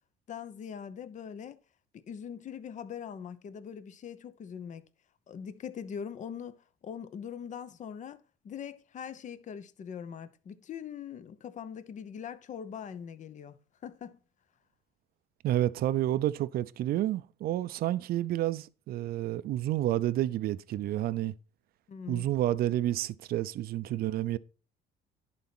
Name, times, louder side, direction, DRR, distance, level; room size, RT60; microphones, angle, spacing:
voice 1, 0.3-1.6 1.9-4.8 5.3-13.6 13.8-14.2 21.9-22.3, left 8 dB, 45° left, 0.9 m, -42 dB
voice 2, 15.4-21.3 22.1-24.4, right 13 dB, 65° right, 0.5 m, -30 dB
11.0 x 4.2 x 6.0 m
cardioid pair, 110°, 17 cm